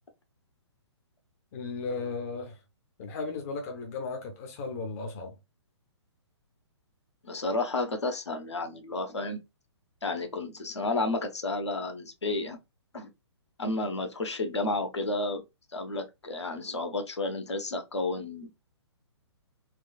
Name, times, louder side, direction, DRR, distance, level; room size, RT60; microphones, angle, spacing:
voice 1, 1.5-2.6 3.0-5.3, left 4 dB, 35° left, 0.7 m, -35 dB
voice 2, 7.2-9.4 10.0-12.6 12.9-13.1 13.6-15.4 15.7-18.7, left 2 dB, 70° left, 1.0 m, -31 dB
4.2 x 2.3 x 2.3 m
figure-of-eight pair, 125°, 15 cm